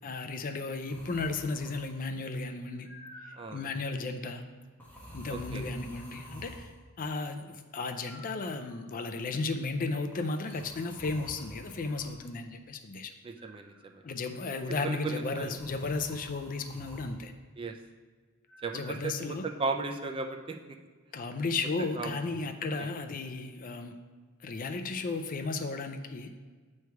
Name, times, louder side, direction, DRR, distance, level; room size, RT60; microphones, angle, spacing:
voice 1, 0.0-2.9 3.5-4.4 5.1-6.7 7.0-13.1 14.0-17.3 18.7-19.4 21.1-23.9 24.4-26.3, left 3 dB, 40° left, 7 dB, 0.4 m, -34 dB
sound 1, 0.9-2.1 2.8-3.7 4.8-6.8 8.0-9.0 10.1-12.2 13.4-14.1 15.3-17.2 18.5-19.0, equal, 10° left, 1.1 m, -49 dB
voice 2, 3.3-3.7 5.3-5.6 13.2-14.0 14.8-15.5 17.6-17.8 18.6-20.6 22.0-22.1 22.8-22.9, right 3 dB, 25° right, 4 dB, 0.4 m, -35 dB
8.1 x 3.2 x 4.6 m, 1.5 s
head